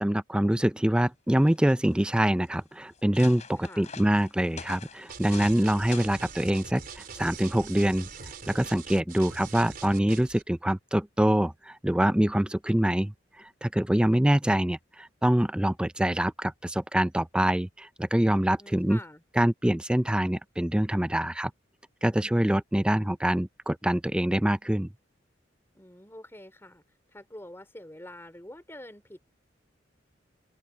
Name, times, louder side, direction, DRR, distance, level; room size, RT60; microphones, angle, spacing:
voice 1, 0.0-8.1 8.5-19.0 19.4-21.5 22.0-24.9, right 1 dB, 5° right, 0.4 m, -25 dB
sound 1, 1.4-2.0 2.6-2.7 2.9-5.6 5.9-6.3 7.1-7.4, left 6 dB, 40° left, 3.0 m, -44 dB
voice 2, 3.5-3.9 18.6-19.2 25.7-29.2, left 1 dB, 15° left, 3.3 m, -46 dB
sound 2, 5.1-10.4, right 5 dB, 50° right, 4.1 m, -43 dB
open air
head